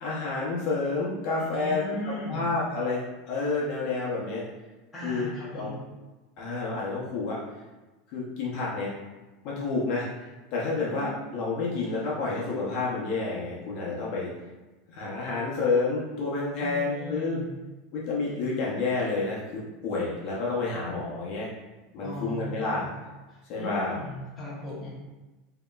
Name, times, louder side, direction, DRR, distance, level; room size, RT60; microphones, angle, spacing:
voice 1, 0.0-3.0 3.3-4.4 5.0-5.7 6.4-7.4 8.1-8.9 9.4-14.3 14.9-17.4 17.9-21.5 21.9-22.9 23.5-24.0, left 3 dB, 40° left, -5 dB, 0.7 m, -29 dB
voice 2, 1.4-2.5 4.9-5.8 10.7-11.1 16.6-17.6 22.0-22.9 23.3-24.9, left 1 dB, 5° left, -8 dB, 0.9 m, -37 dB
5.3 x 2.8 x 2.3 m, 1.1 s
supercardioid pair, 175°, 0 cm